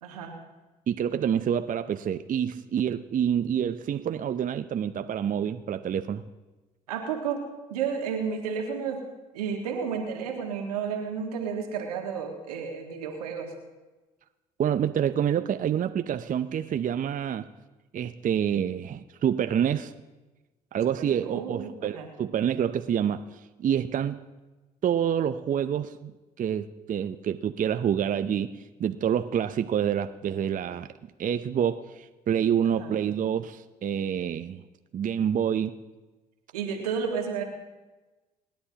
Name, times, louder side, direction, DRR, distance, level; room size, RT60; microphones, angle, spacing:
voice 1, 0.0-0.4 6.9-7.4 7.7-9.0 9.3-13.5 21.1-22.1 32.6-32.9 36.5-37.4, right 6 dB, 90° right, 2 dB, 1.7 m, -32 dB
voice 2, 0.9-6.2 14.6-17.5 17.9-19.9 20.7-24.2 24.8-28.5 28.8-30.9 31.2-34.6 34.9-35.8, right 9 dB, 45° right, 10 dB, 0.6 m, -27 dB
27.0 x 10.5 x 2.9 m, 1.2 s
hypercardioid pair, 55°, 19 cm